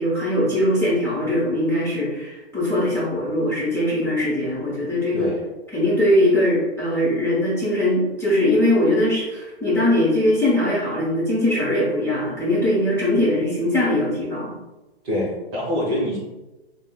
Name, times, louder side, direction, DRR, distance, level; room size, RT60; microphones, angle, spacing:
voice 1, 0.0-5.3 5.7-14.5, left 1 dB, 10° left, -9 dB, 0.9 m, -21 dB
voice 2, 5.1-5.4 15.0-16.2, left 1 dB, 30° right, -4 dB, 0.9 m, -25 dB
5.1 x 2.1 x 2.2 m, 1.1 s
hypercardioid pair, 130°, 33 cm